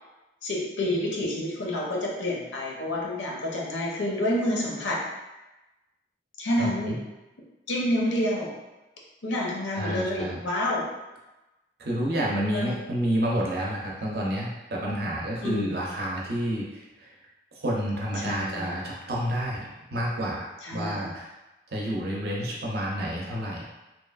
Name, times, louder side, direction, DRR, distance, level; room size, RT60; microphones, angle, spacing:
voice 1, 0.4-5.0 6.4-7.0 7.7-8.5 9.2-10.9 12.5-12.8 15.4-15.7 18.2-18.7 20.6-21.1, left 1 dB, 90° left, -3 dB, 0.6 m, -28 dB
voice 2, 6.6-7.0 9.7-10.4 11.8-17.2 17.5-21.3 21.7-23.7, equal, 60° right, -3 dB, 0.6 m, -29 dB
2.9 x 2.3 x 2.3 m, 1.0 s
head